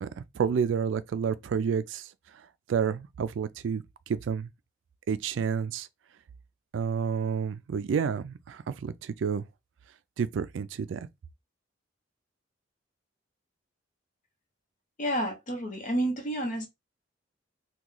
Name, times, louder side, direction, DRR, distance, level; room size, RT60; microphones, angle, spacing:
voice 1, 0.0-2.1 2.7-4.5 5.1-5.9 6.7-9.4 10.2-11.0, right 6 dB, 70° right, 0.3 m, -30 dB
voice 2, 15.0-16.7, right 1 dB, 40° left, 1.0 m, -30 dB
3.0 x 2.3 x 3.7 m
head